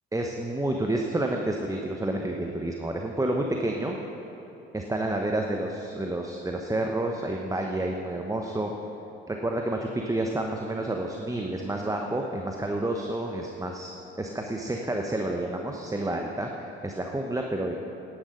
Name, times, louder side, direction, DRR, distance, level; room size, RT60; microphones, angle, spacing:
voice 1, 0.1-4.0 4.7-8.7 9.3-16.5 16.8-17.8, right 1 dB, 10° right, 2 dB, 1.0 m, -29 dB
10.0 x 9.6 x 6.5 m, 2.9 s
hypercardioid pair, 55°, 32 cm